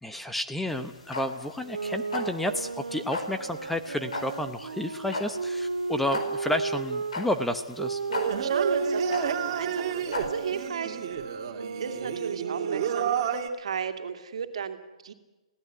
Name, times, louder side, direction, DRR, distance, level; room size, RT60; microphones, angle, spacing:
voice 1, 0.0-8.0, left 1 dB, 5° left, 8 dB, 0.9 m, -31 dB
sound 1, 0.7-10.7, left 3 dB, 80° left, 4.8 m, -37 dB
sound 2, 1.6-7.2 7.8-13.4, right 3 dB, 90° right, 1.8 m, -34 dB
Singing, 8.1-13.5, right 9 dB, 40° right, 2.6 m, -31 dB
voice 2, 8.4-11.0 11.8-15.1, right 7 dB, 65° right, 7 dB, 2.5 m, -34 dB
22.0 x 16.5 x 9.4 m, 1.1 s
hypercardioid pair, 145°, 3 cm